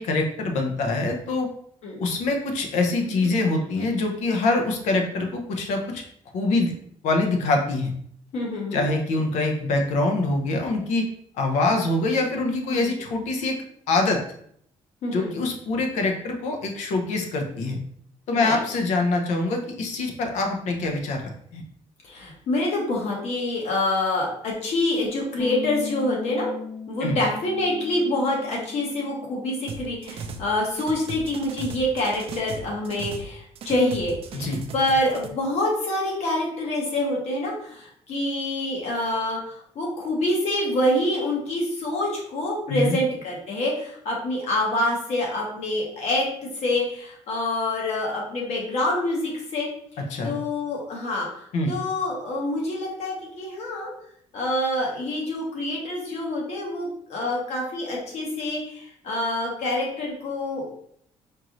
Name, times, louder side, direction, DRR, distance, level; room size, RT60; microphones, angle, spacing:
voice 1, 0.0-1.5 2.0-6.0 6.3-6.7 7.0-7.9 8.7-11.1 11.3-13.6 13.9-14.2 15.1-17.8 18.3-21.2 21.5-21.6 27.0-27.2 34.3-34.6 42.7-43.0 50.1-50.4 51.5-51.7, left 2 dB, 85° left, 3 dB, 0.8 m, -24 dB
voice 2, 8.3-8.8 12.7-12.9 15.0-15.3 18.3-18.6 22.0-26.5 26.9-49.7 50.2-53.9 54.3-60.6, left 1 dB, 65° left, -2 dB, 1.3 m, -26 dB
Bass guitar, 25.4-31.6, left 5 dB, 35° left, 0.3 m, -39 dB
sound 1, 29.7-30.5 30.7-33.3 33.6-35.3, right 4 dB, 50° right, 0.5 m, -36 dB
4.5 x 2.6 x 3.0 m, 0.66 s
cardioid pair, 125°, 12 cm